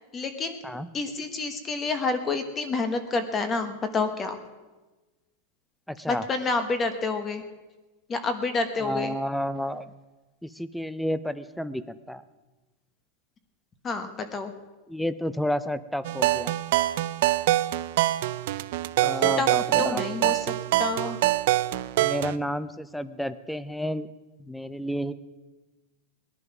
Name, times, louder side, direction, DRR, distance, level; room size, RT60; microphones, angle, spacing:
voice 1, 0.1-0.6 0.9-4.4 6.1-7.4 8.1-9.2 13.8-14.5 19.1-19.5 19.8-20.5 20.8-21.2, left 3 dB, 15° left, 8 dB, 1.1 m, -28 dB
voice 2, 5.9-6.2 8.8-9.8 10.4-12.2 14.9-16.5 19.0-20.0 22.0-24.1 24.4-25.1, equal, ahead, 15 dB, 0.4 m, -31 dB
sound 1, 16.1-22.4, right 16 dB, 55° right, 0.5 m, -25 dB
19.5 x 11.0 x 6.0 m, 1.2 s
supercardioid pair, 175°, 0 cm